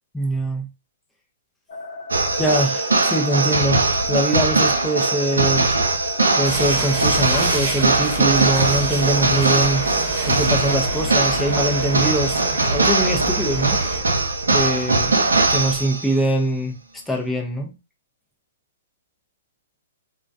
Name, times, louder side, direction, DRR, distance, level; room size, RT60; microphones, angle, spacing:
voice 1, 0.1-0.7 2.4-5.8 6.3-9.9 10.2-12.4 12.7-13.8 14.5-16.8 17.1-17.7, right 1 dB, ahead, 0.6 m, -23 dB
sound 1, 1.7-12.8, left 3 dB, 60° left, 0.9 m, -35 dB
sound 2, 2.1-16.2, right 3 dB, 90° right, 0.5 m, -20 dB
sound 3, 6.4-14.0, right 3 dB, 40° right, 1.0 m, -27 dB
2.2 x 2.2 x 2.5 m
hypercardioid pair, 125°, 0 cm